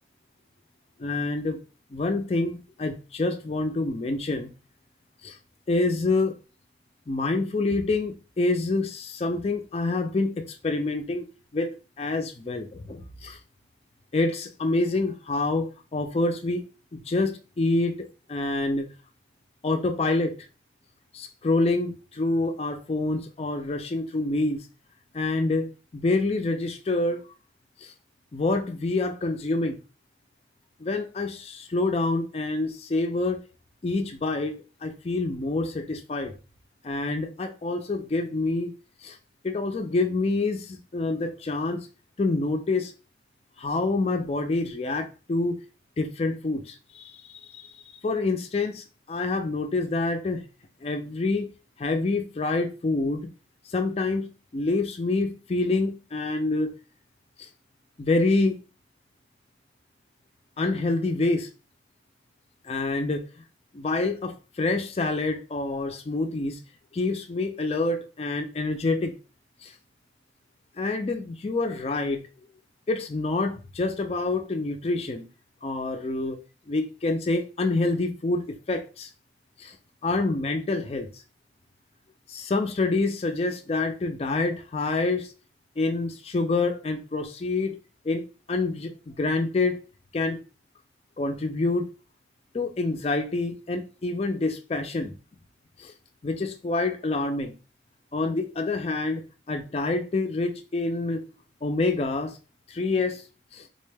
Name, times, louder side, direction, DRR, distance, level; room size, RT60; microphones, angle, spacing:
voice 1, 1.0-1.6 1.9-4.5 5.2-5.4 5.7-6.3 7.1-11.3 11.5-13.4 14.1-16.6 16.9-18.9 19.6-20.3 21.1-24.6 25.1-27.2 27.8-27.9 28.3-29.8 30.8-33.4 33.8-36.3 36.8-38.7 39.0-39.2 39.4-41.9 42.2-42.9 43.6-45.6 46.0-47.7 48.0-50.4 50.8-51.5 51.8-53.3 53.7-54.3 54.5-56.7 57.4-57.5 58.0-58.6 60.6-61.5 62.6-63.3 63.7-66.6 66.9-69.1 69.6-69.7 70.8-72.2 72.9-75.2 75.6-76.4 76.7-79.1 79.6-79.8 80.0-81.1 82.3-85.3 85.8-87.8 88.0-88.2 88.5-89.8 90.1-90.4 91.2-91.9 92.5-95.1 95.8-95.9 96.2-97.5 98.1-101.2 101.6-102.4 102.7-103.2 103.5-103.7, left 2 dB, 35° left, 0.4 m, -27 dB
3.8 x 2.1 x 3.3 m
head